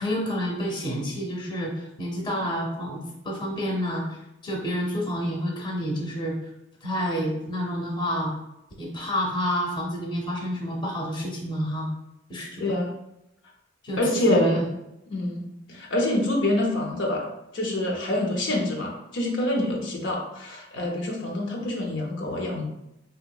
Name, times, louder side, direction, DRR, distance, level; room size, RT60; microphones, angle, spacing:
voice 1, 0.0-4.2 4.4-6.4 6.8-8.3 8.8-11.9 12.3-12.6 13.8-14.7, equal, 25° left, -1 dB, 0.6 m, -29 dB
voice 2, 12.6-12.9 14.0-14.7 15.1-17.3 17.5-22.6, left 1 dB, 65° left, -1 dB, 0.5 m, -26 dB
3.3 x 2.8 x 2.2 m, 0.87 s
head